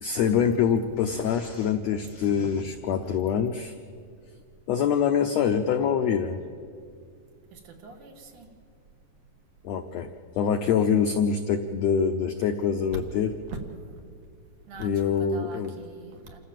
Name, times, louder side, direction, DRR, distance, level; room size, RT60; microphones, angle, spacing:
voice 1, 0.0-3.7 4.7-6.4 9.6-10.1 10.3-13.3 14.8-15.7, left 7 dB, 80° left, 7 dB, 1.5 m, -25 dB
voice 2, 7.5-8.5 13.5-13.6 13.9-14.0 14.6-16.4, right 4 dB, 65° right, 3 dB, 3.3 m, -43 dB
27.5 x 14.5 x 7.5 m, 2.2 s
omnidirectional pair, 4.0 m